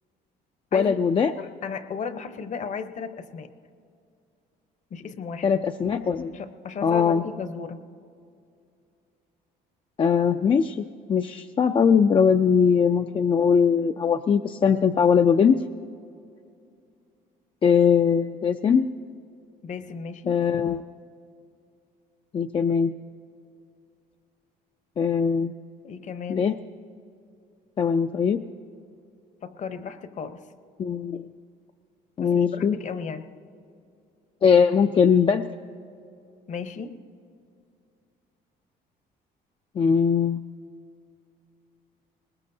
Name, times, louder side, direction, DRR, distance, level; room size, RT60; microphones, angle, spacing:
voice 1, 0.7-1.3 5.4-6.3 6.8-7.2 10.0-15.6 17.6-18.9 20.3-20.8 22.3-22.9 25.0-25.5 26.3-26.6 27.8-28.4 30.8-31.3 32.2-32.8 34.4-35.5 39.8-40.4, left 6 dB, 30° left, 6 dB, 0.4 m, -21 dB
voice 2, 1.4-3.5 4.9-5.6 6.3-7.8 19.6-20.4 25.8-26.5 29.4-30.4 32.2-33.3 36.5-37.0, left 5 dB, 45° left, 10 dB, 0.8 m, -35 dB
21.0 x 20.0 x 2.7 m, 2.4 s
cardioid pair, 110°, 17 cm